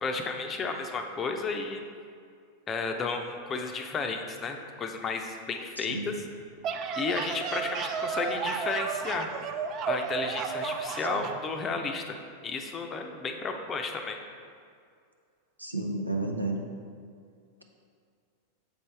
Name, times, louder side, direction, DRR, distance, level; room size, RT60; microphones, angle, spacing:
voice 1, 0.0-1.9 2.7-6.1 7.0-9.3 9.9-12.2 12.4-14.2, left 4 dB, 25° left, 4 dB, 0.6 m, -33 dB
voice 2, 5.8-6.1 15.6-16.6, right 2 dB, 85° right, 2 dB, 0.6 m, -31 dB
sound 1, 6.4-11.4, right 6 dB, 35° right, 0.4 m, -32 dB
6.8 x 5.3 x 3.3 m, 2.3 s
figure-of-eight pair, 90°, 0 cm